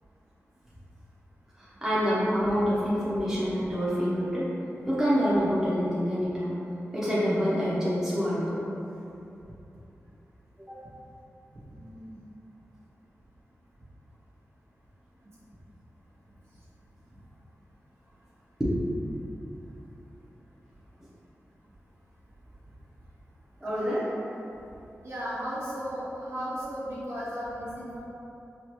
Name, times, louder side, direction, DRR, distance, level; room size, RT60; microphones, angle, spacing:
voice 1, 1.6-4.5 4.9-6.5 6.9-8.6 10.7-10.8 18.6-18.7 23.6-24.1, equal, 10° right, -10 dB, 0.9 m, -26 dB
voice 2, 11.5-12.2 17.1-17.2 23.6-23.9 25.0-28.0, equal, 60° right, -10 dB, 1.3 m, -36 dB
4.9 x 2.4 x 2.9 m, 2.8 s
wide cardioid pair, 85°, 5 cm